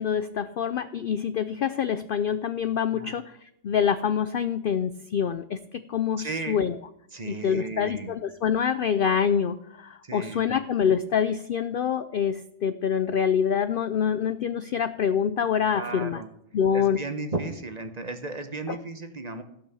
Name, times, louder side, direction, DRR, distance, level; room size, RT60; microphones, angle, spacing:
voice 1, 0.0-6.7 7.3-16.2 16.5-17.0 18.7-18.8, left 7 dB, 65° left, 12 dB, 0.5 m, -26 dB
voice 2, 6.2-6.6 7.1-8.2 10.0-10.6 15.7-16.3 16.7-19.4, right 3 dB, 35° right, 8 dB, 1.0 m, -35 dB
15.0 x 5.9 x 6.9 m, 0.77 s
omnidirectional pair, 1.4 m